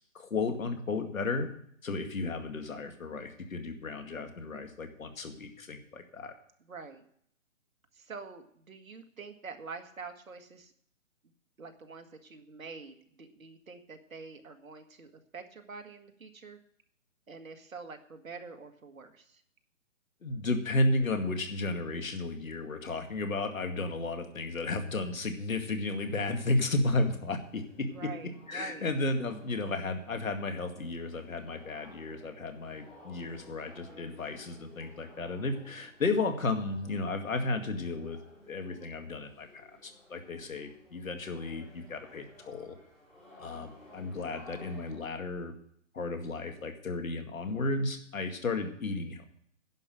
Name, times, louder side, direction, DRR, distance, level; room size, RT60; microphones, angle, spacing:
voice 1, 0.1-1.5 1.8-6.3 20.2-28.1 28.5-38.2 38.5-42.8 43.4-45.6 45.9-49.2, left 2 dB, 85° left, 6 dB, 2.2 m, -33 dB
voice 2, 6.7-7.0 7.9-10.7 11.6-16.6 17.3-19.4 27.9-28.8, right 4 dB, 90° right, 6 dB, 1.8 m, -46 dB
sound 1, 26.0-45.0, left 1 dB, ahead, 2.8 m, -56 dB
10.5 x 6.1 x 8.9 m, 0.67 s
hypercardioid pair, 155°, 40 cm